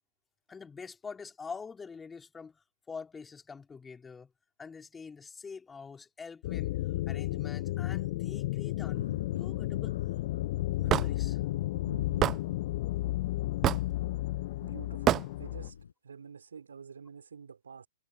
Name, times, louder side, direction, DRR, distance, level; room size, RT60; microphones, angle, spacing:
voice 1, 0.5-4.3 4.6-6.8 7.1-10.0 10.7-11.4, left 5 dB, 15° left, 4.5 m, -45 dB
sound 1, 6.4-15.7, left 17 dB, 50° left, 1.2 m, -33 dB
Thunder, 8.9-15.9, left 7 dB, 70° left, 7.1 m, -45 dB
Hammer / Wood, 10.9-11.1 12.2-12.4 13.6-13.9 15.1-15.3, right 12 dB, 25° right, 0.6 m, -25 dB
voice 2, 14.6-15.8 16.0-17.9, right 6 dB, 75° right, 4.4 m, -48 dB
figure-of-eight pair, 110°, 0 cm